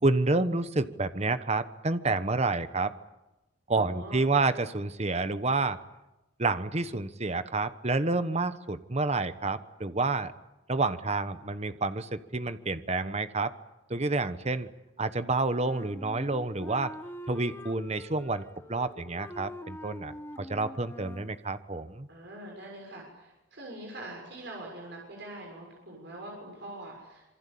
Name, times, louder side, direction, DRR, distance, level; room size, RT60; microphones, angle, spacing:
voice 1, 0.0-2.9 3.7-5.8 6.4-10.3 10.7-13.5 13.9-14.7 15.0-16.9 17.3-18.4 18.7-22.1, right 3 dB, 35° right, 12 dB, 1.1 m, -29 dB
voice 2, 3.7-4.2 22.1-27.4, right 1 dB, 60° right, -1 dB, 6.7 m, -43 dB
Wind instrument woodwind instrument, 15.5-21.4, left 1 dB, 10° left, 1.2 m, -45 dB
26.5 x 24.0 x 8.6 m, 0.99 s
head